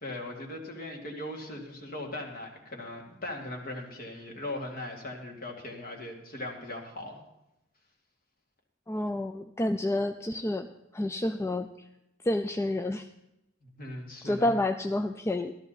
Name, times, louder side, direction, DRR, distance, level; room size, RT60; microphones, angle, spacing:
voice 1, 0.0-7.2 13.6-14.5, left 1 dB, 45° left, 1 dB, 2.2 m, -39 dB
voice 2, 8.9-10.7 10.9-11.7 12.2-13.1 14.2-15.5, left 1 dB, 15° left, 8 dB, 0.3 m, -29 dB
14.0 x 13.0 x 4.0 m, 0.88 s
head